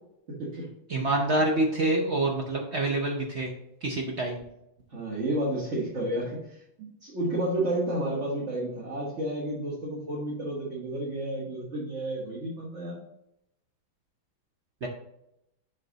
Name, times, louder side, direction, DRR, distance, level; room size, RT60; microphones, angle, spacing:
voice 1, 0.3-0.7 4.9-13.0, right 1 dB, 40° right, -5 dB, 1.7 m, -31 dB
voice 2, 0.9-3.5 3.8-4.4 14.8-14.9, right 2 dB, 60° right, 0 dB, 0.7 m, -26 dB
6.2 x 5.0 x 4.0 m, 0.82 s
omnidirectional pair, 2.3 m